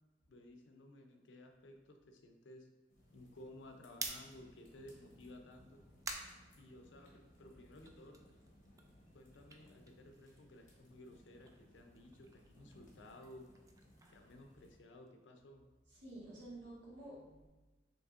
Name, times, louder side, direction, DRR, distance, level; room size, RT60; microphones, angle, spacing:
voice 1, 0.3-2.7 3.1-5.8 6.6-8.2 9.1-13.5 14.1-15.6, left 1 dB, 85° left, 4 dB, 0.5 m, -56 dB
sound 1, 2.9-14.8, equal, 45° left, 1.2 m, -65 dB
sound 2, 3.9-7.3 7.7-10.7 10.9-15.1, right 3 dB, 20° right, 0.3 m, -51 dB
voice 2, 15.9-17.5, right 1 dB, 75° right, -6 dB, 1.5 m, -51 dB
5.2 x 3.1 x 2.4 m, 1.2 s
head